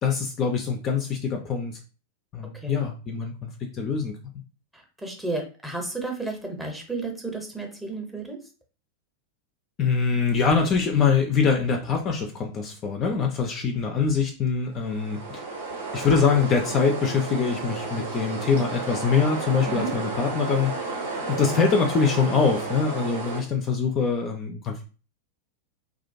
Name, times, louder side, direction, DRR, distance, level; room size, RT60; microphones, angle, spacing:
voice 1, 0.0-1.8 2.3-4.3 9.8-15.4 15.9-20.7 21.3-24.8, left 5 dB, 30° left, 3 dB, 0.3 m, -24 dB
voice 2, 4.7-8.4 19.7-19.9 21.5-21.6, right 3 dB, 5° right, 2 dB, 0.7 m, -32 dB
sound 1, 14.7-23.4, right 3 dB, 75° right, 0.8 m, -32 dB
2.3 x 2.1 x 2.5 m, 0.35 s
figure-of-eight pair, 90°, 0 cm